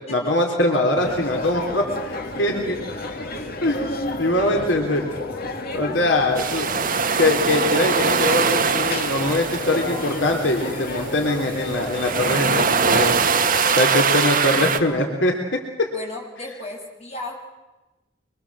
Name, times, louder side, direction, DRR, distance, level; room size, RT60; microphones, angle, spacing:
voice 1, 0.1-2.8 3.6-5.1 5.7-6.7 7.2-13.2 13.8-15.4, left 1 dB, 80° left, 2 dB, 3.5 m, -22 dB
sound 1, 0.9-13.8, left 2 dB, 55° left, 2.6 m, -32 dB
voice 2, 6.3-6.9 13.9-15.2 15.9-17.3, left 2 dB, 35° left, 0 dB, 6.9 m, -37 dB
sound 2, 6.4-14.8, right 5 dB, 50° right, 1.8 m, -22 dB
25.0 x 24.0 x 7.6 m, 1.1 s
head